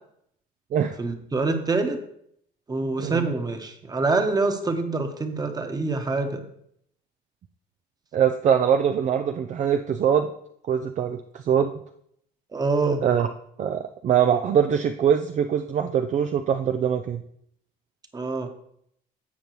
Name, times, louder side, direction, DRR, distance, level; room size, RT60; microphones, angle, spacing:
voice 1, 1.0-2.0 2.7-6.4 12.5-13.0 18.1-18.5, right 3 dB, 25° right, 6 dB, 1.2 m, -25 dB
voice 2, 8.1-10.3 10.7-11.7 13.0-13.3 13.6-17.2, right 8 dB, 45° right, 7 dB, 0.5 m, -23 dB
16.0 x 5.3 x 3.1 m, 0.70 s
cardioid pair, 110°, 17 cm